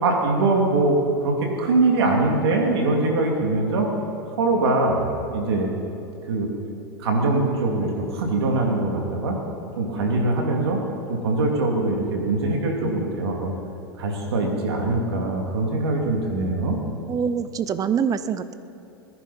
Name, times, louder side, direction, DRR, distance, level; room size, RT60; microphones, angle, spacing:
voice 1, 0.0-3.9 4.4-5.0 5.3-5.7 6.3-6.5 7.0-9.4 9.8-10.8 11.1-13.5 14.0-16.8, right 2 dB, 80° right, 1 dB, 2.9 m, -22 dB
voice 2, 17.1-18.5, right 7 dB, 25° right, 13 dB, 0.7 m, -24 dB
20.5 x 11.0 x 4.4 m, 2.8 s
hypercardioid pair, 110°, 13 cm